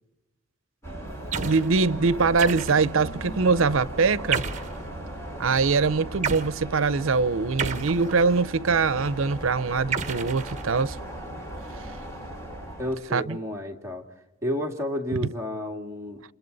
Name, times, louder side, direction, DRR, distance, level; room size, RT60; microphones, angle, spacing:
sound 1, 0.8-13.0, right 1 dB, 15° left, 4.5 m, -37 dB
sound 2, 1.3-1.7 2.4-3.0 4.3-4.8 6.2-6.5 7.6-8.5 9.9-11.0, right 5 dB, 35° right, 1.4 m, -31 dB
voice 1, 1.4-4.4 5.4-11.0 13.1-13.4, right 4 dB, 80° right, 0.6 m, -23 dB
voice 2, 12.8-14.1 14.4-16.2, left 1 dB, 15° right, 2.2 m, -31 dB
29.0 x 27.0 x 4.0 m
head